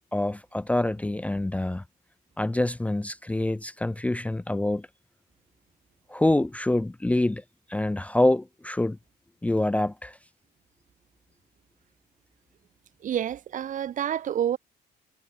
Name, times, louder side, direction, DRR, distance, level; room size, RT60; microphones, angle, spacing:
voice 1, 0.1-1.8 2.4-4.9 6.1-7.4 7.7-9.0 9.4-10.2, left 1 dB, 10° left, 0.6 m, -26 dB
voice 2, 13.0-14.6, right 10 dB, 50° right, 1.2 m, -28 dB
cardioid pair, 110°, 17 cm